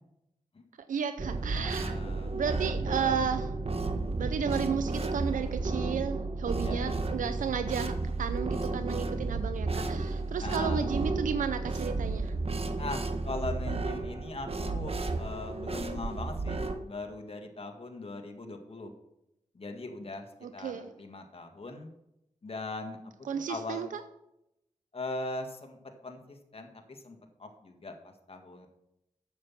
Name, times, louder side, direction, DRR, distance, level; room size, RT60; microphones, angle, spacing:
voice 1, 0.8-2.0 2.3-3.5 4.2-12.3 20.4-20.9 23.2-24.0, right 7 dB, 85° right, 11 dB, 0.5 m, -33 dB
sound 1, 1.2-16.8, right 3 dB, 50° right, 1.2 m, -32 dB
voice 2, 1.5-2.3 6.6-7.0 10.4-10.9 12.8-18.9 19.6-20.3 20.5-20.7 21.0-21.9 22.4-23.0 23.3-23.9 24.9-25.8 26.0-27.9 28.3-28.7, left 2 dB, 45° left, 4 dB, 1.8 m, -40 dB
9.5 x 7.3 x 5.8 m, 0.85 s
cardioid pair, 40°, 13 cm